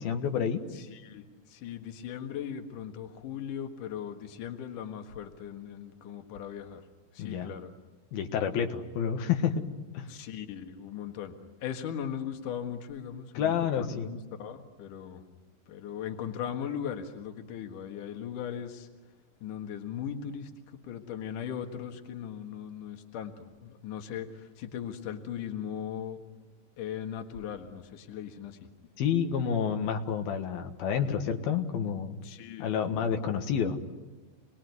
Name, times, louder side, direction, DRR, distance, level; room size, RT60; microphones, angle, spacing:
voice 1, 0.0-0.6 7.2-7.5 8.1-9.6 9.9-10.1 13.4-14.1 29.0-32.2 32.6-33.8, left 7 dB, 85° left, 5 dB, 3.5 m, -29 dB
voice 2, 0.7-6.8 7.1-7.7 10.1-11.3 11.6-15.2 15.7-18.9 19.4-26.2 26.8-28.7 32.2-33.4, left 8 dB, 65° left, 5 dB, 3.1 m, -39 dB
28.5 x 21.0 x 9.6 m, 1.2 s
omnidirectional pair, 4.2 m